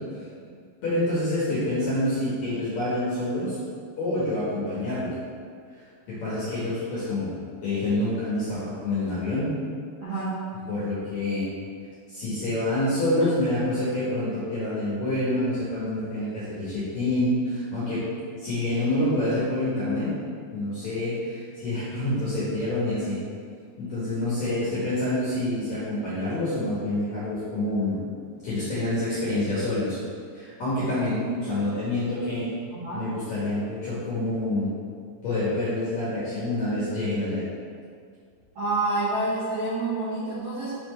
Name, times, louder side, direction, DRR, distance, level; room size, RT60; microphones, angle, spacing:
voice 1, 0.8-3.6 4.0-5.1 6.1-9.5 10.7-11.5 12.1-18.1 18.4-20.1 20.5-23.2 23.8-28.0 28.4-30.0 30.3-32.5 32.9-34.7 35.2-37.4, left 1 dB, 60° left, -10 dB, 2.0 m, -27 dB
voice 2, 10.0-10.3 32.8-33.1 38.6-40.7, right 2 dB, 55° right, -12 dB, 2.1 m, -28 dB
5.9 x 4.3 x 4.2 m, 2.1 s
omnidirectional pair, 4.8 m